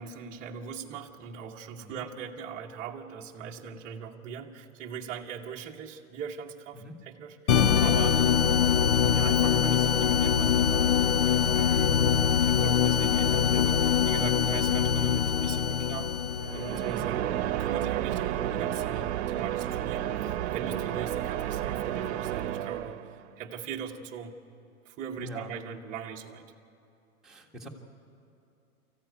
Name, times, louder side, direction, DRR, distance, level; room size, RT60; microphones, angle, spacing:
voice 1, 0.0-8.6 9.1-12.0 12.4-16.1 16.5-23.0 23.4-24.4 24.8-26.5, right 6 dB, 20° right, -2 dB, 1.0 m, -40 dB
sound 1, 7.5-16.9, left 8 dB, 75° left, 1.1 m, -23 dB
sound 2, 16.4-23.3, right 12 dB, 50° right, 1.0 m, -31 dB
voice 2, 25.2-25.5 27.2-27.7, equal, ahead, -2 dB, 1.5 m, -43 dB
24.5 x 15.0 x 9.3 m, 2.7 s
hypercardioid pair, 155°, 44 cm